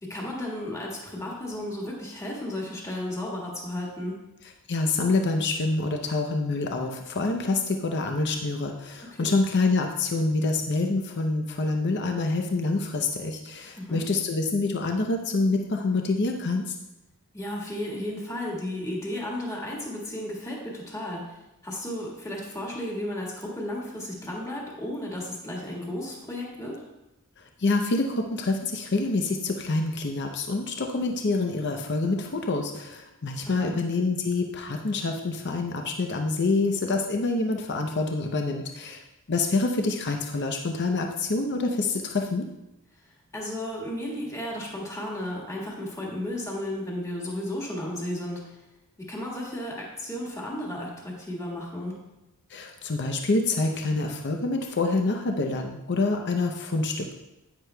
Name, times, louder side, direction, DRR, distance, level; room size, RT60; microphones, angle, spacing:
voice 1, 0.0-4.2 9.1-9.4 13.8-14.0 17.3-26.8 33.4-33.7 43.3-48.6 49.1-52.0, left 1 dB, 15° left, -4 dB, 1.8 m, -34 dB
voice 2, 4.7-16.8 27.4-39.0 39.3-42.5 52.5-57.1, left 3 dB, 50° left, 3 dB, 0.6 m, -26 dB
10.5 x 9.3 x 2.2 m, 0.96 s
head